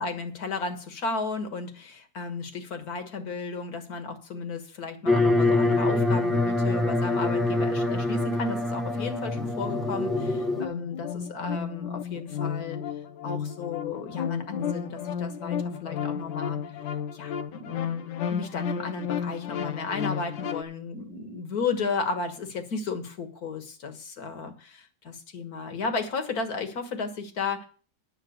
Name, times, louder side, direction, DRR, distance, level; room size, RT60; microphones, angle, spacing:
voice 1, 0.0-12.8 13.2-18.0 18.3-27.7, left 4 dB, 60° left, 7 dB, 2.0 m, -34 dB
sound 1, 5.1-10.6, left 2 dB, ahead, 0.7 m, -25 dB
sound 2, 9.4-20.6, left 8 dB, 85° left, 1.4 m, -33 dB
9.9 x 6.0 x 7.8 m, 0.39 s
omnidirectional pair, 1.9 m